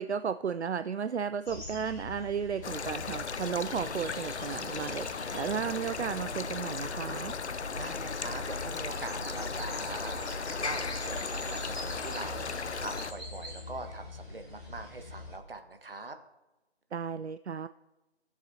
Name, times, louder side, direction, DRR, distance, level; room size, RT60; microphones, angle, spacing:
voice 1, 0.0-7.3 16.9-17.7, right 7 dB, 80° right, 12 dB, 0.5 m, -34 dB
sound 1, 1.4-15.4, left 1 dB, 5° left, 0.9 m, -42 dB
sound 2, 2.6-13.1, left 5 dB, 85° left, 0.5 m, -37 dB
voice 2, 2.8-3.2 7.7-16.2, right 3 dB, 60° right, 7 dB, 1.3 m, -43 dB
15.5 x 7.3 x 2.7 m, 1.0 s
figure-of-eight pair, 160°, 33 cm